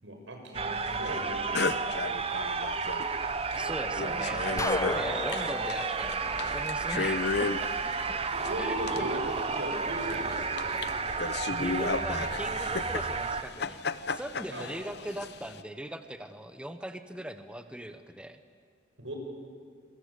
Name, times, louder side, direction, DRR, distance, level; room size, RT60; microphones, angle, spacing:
voice 1, 0.0-2.1 4.8-5.3 8.3-11.3 14.5-14.7 19.0-19.1, right 1 dB, 90° right, 3 dB, 6.4 m, -38 dB
sound 1, 0.5-13.4, right 4 dB, 30° right, 0.9 m, -32 dB
sound 2, 1.0-1.3 1.5-3.2 3.5-3.6 3.8-15.6, left 4 dB, 60° left, 0.9 m, -35 dB
voice 2, 3.6-8.2 8.6-9.1 11.2-13.8 14.1-18.4, right 1 dB, 5° right, 8 dB, 1.1 m, -40 dB
sound 3, 4.6-7.4, left 2 dB, 15° left, 0.6 m, -35 dB
28.0 x 23.5 x 8.4 m, 2.1 s
head